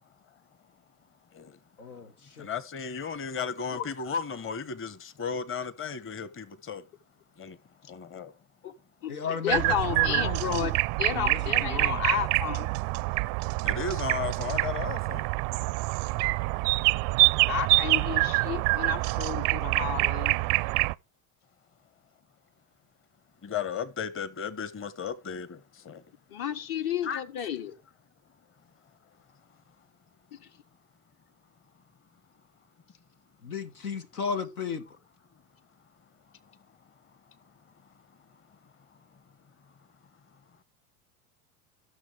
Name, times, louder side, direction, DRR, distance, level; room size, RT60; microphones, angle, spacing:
voice 1, 1.8-2.1 2.4-2.5 9.1-10.7 11.1-12.0 33.4-34.8, left 5 dB, 85° left, 1.2 m, -34 dB
voice 2, 2.4-6.9 7.4-7.6 7.8-8.3 13.6-15.3 23.4-26.0 27.0-27.2 38.5-38.6 38.9-39.2, left 6 dB, 30° left, 1.3 m, -35 dB
voice 3, 9.4-10.7 11.0-12.7 17.5-20.4 26.3-27.7, left 9 dB, 55° left, 1.6 m, -32 dB
sound 1, 9.5-20.9, right 25 dB, 45° right, 0.4 m, -26 dB
16.0 x 6.5 x 3.5 m
hypercardioid pair, 80°, 43 cm